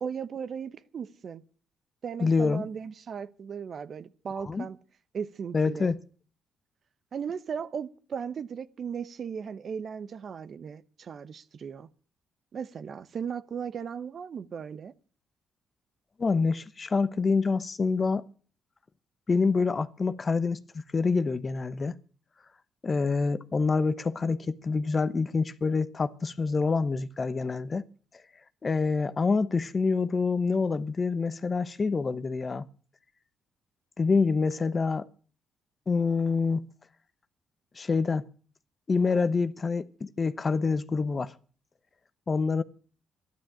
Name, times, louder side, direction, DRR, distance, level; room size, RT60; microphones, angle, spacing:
voice 1, 0.0-1.4 2.0-4.8 5.1-5.9 7.1-11.9 12.5-14.9, right 7 dB, 50° right, 1.0 m, -37 dB
voice 2, 2.2-2.6 4.4-4.7 5.5-6.0 16.2-18.2 19.3-22.0 22.8-27.8 28.6-32.7 34.0-35.1 35.9-36.7 37.8-38.2 38.9-41.3 42.3-42.6, left 4 dB, 35° left, 1.0 m, -26 dB
13.0 x 11.5 x 9.1 m
cardioid pair, 90°, 0 cm